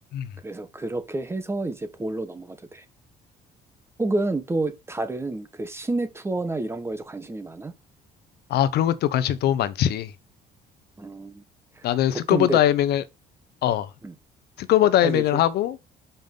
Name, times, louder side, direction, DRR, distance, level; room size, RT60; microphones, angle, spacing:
voice 1, 0.4-2.8 4.0-7.7 11.0-11.4 11.8-11.9 12.3-12.6 14.0-14.1 15.0-15.4, right 2 dB, 15° right, 1.3 m, -29 dB
voice 2, 8.5-10.1 11.8-13.0 13.6-13.9 14.6-15.8, left 12 dB, 75° left, 0.9 m, -21 dB
7.2 x 5.3 x 3.9 m
cardioid pair, 110°, 17 cm